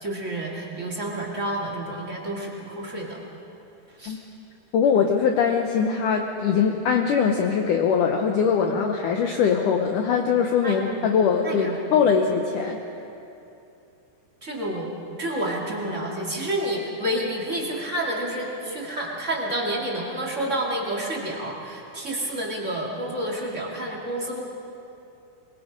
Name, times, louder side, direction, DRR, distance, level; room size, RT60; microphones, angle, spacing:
voice 1, 0.0-3.2 4.0-4.2 8.7-8.8 10.6-11.1 11.4-12.1 14.4-14.9 15.2-24.4, right 1 dB, 25° right, -2 dB, 1.6 m, -29 dB
voice 2, 4.7-12.8, left 6 dB, 90° left, 3 dB, 1.8 m, -22 dB
23.5 x 22.5 x 5.2 m, 2.8 s
omnidirectional pair, 5.1 m